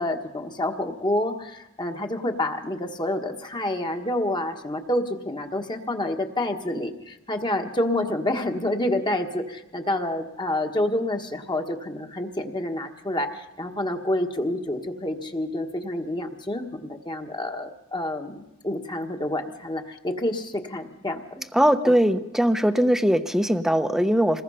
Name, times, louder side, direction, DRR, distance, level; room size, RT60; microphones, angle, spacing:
voice 1, 0.0-21.4, left 1 dB, 20° left, 4 dB, 1.5 m, -28 dB
voice 2, 21.5-24.4, equal, ahead, 9 dB, 0.9 m, -20 dB
27.0 x 20.0 x 5.6 m, 0.90 s
head